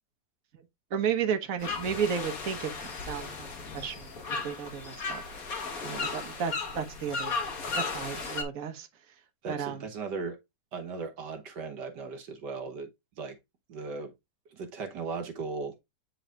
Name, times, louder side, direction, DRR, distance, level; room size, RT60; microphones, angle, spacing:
voice 1, 0.9-3.5 3.7-5.2 6.0-7.4 7.7-8.9 9.5-9.9, right 7 dB, 55° right, 1.5 m, -33 dB
sound 1, 1.6-8.4, left 4 dB, 55° left, 1.8 m, -35 dB
voice 2, 9.4-10.4 10.7-12.9 13.2-13.4 13.7-14.1 14.5-15.8, right 4 dB, 75° right, 1.7 m, -37 dB
9.0 x 4.7 x 2.4 m
omnidirectional pair, 1.8 m